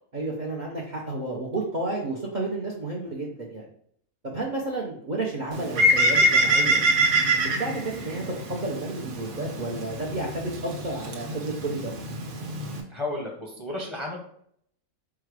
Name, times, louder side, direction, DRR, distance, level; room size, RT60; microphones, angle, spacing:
voice 1, 0.1-3.7 4.2-6.8 7.6-8.2 8.5-11.9, right 2 dB, 45° right, -1 dB, 0.6 m, -31 dB
Bird, 5.5-12.8, right 1 dB, 85° right, 1.2 m, -25 dB
voice 2, 12.9-14.2, left 2 dB, 30° left, -1 dB, 0.5 m, -32 dB
4.7 x 2.2 x 4.7 m, 0.65 s
omnidirectional pair, 1.5 m